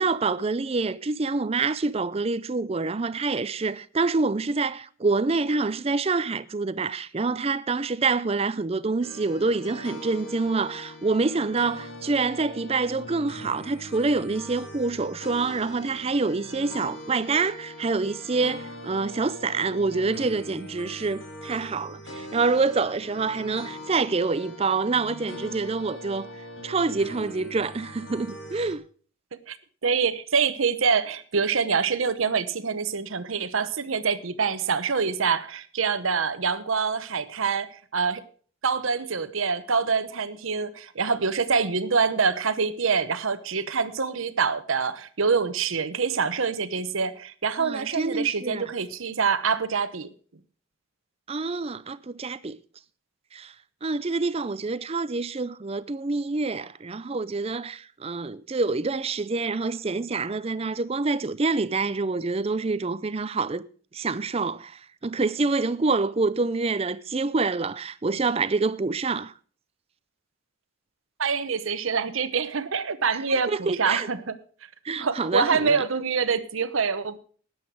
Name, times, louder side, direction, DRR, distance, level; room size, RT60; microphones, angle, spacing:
voice 1, 0.0-26.3 26.6-28.8 47.6-48.6 51.3-52.6 53.3-53.5 53.8-63.7 63.9-69.3 73.1-74.1 74.8-75.8, right 3 dB, 30° right, 0.5 m, -26 dB
sound 1, 9.0-28.8, equal, 60° left, 2.4 m, -41 dB
voice 2, 29.8-38.2 38.6-50.1 71.2-74.4 75.0-77.2, right 5 dB, 70° right, 0.9 m, -25 dB
13.5 x 9.7 x 4.7 m
head